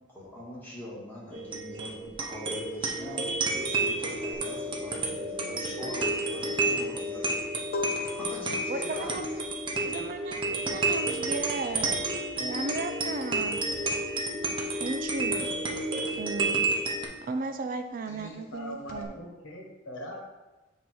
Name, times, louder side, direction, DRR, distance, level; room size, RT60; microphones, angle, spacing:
voice 1, 0.1-7.3 8.0-9.4, left 1 dB, 10° left, -8 dB, 2.0 m, -42 dB
sound 1, 1.3-17.1, right 2 dB, 25° right, 0.7 m, -30 dB
sound 2, 4.3-14.6 14.8-19.0, left 4 dB, 50° left, 0.8 m, -42 dB
voice 2, 8.7-9.4 9.8-10.4 10.7-12.0 12.4-13.6 14.8-15.5 16.2-16.6 17.2-19.1, right 3 dB, 45° right, 8 dB, 0.3 m, -35 dB
voice 3, 18.1-20.3, equal, 90° left, 0 dB, 1.2 m, -41 dB
7.4 x 2.8 x 4.6 m, 1.1 s
head